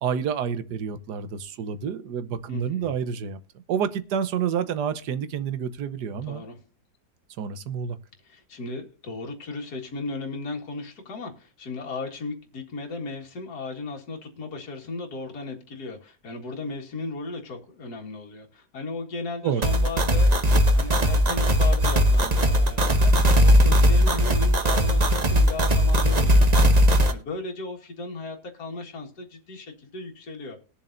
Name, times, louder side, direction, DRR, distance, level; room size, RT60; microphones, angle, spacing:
voice 1, 0.0-3.4 3.7-6.4 7.4-8.0 19.4-19.6, right 7 dB, 70° right, 13 dB, 1.4 m, -28 dB
voice 2, 2.5-3.0 6.2-6.6 8.2-26.7 27.1-30.6, left 3 dB, 65° left, 0 dB, 2.3 m, -36 dB
sound 1, 19.6-27.1, equal, 30° right, 0.8 m, -19 dB
20.0 x 7.2 x 2.6 m, 0.38 s
omnidirectional pair, 1.8 m